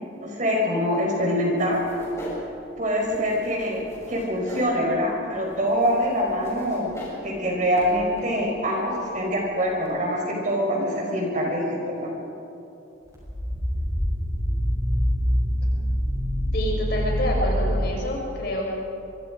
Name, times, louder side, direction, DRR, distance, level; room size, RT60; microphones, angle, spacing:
voice 1, 0.2-1.8 2.8-3.8 4.1-6.9 7.2-12.1, equal, 40° right, -1 dB, 5.3 m, -24 dB
sound 1, 1.6-10.0, equal, 15° left, 6.5 m, -42 dB
sound 2, 13.1-17.8, equal, 15° right, 7.7 m, -25 dB
voice 2, 16.5-18.7, equal, 55° left, -2 dB, 5.9 m, -27 dB
25.5 x 24.5 x 5.2 m, 2.8 s
head